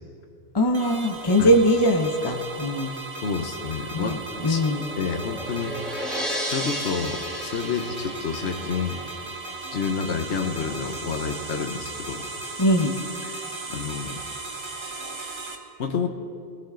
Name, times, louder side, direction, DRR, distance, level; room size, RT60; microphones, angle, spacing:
voice 1, 0.5-2.9 3.9-4.8 12.6-12.9, equal, 25° left, 3 dB, 0.9 m, -21 dB
sound 1, 0.7-15.6, right 3 dB, 25° right, 1.2 m, -36 dB
voice 2, 3.2-4.2 4.5-4.6 5.0-5.8 6.5-9.0 9.7-12.2 13.2-13.4 13.7-14.2 15.8-16.1, left 5 dB, 80° left, 5 dB, 1.2 m, -29 dB
sound 2, 4.2-9.2, equal, ahead, 3.0 m, -34 dB
21.0 x 18.0 x 3.8 m, 2.5 s
omnidirectional pair, 1.1 m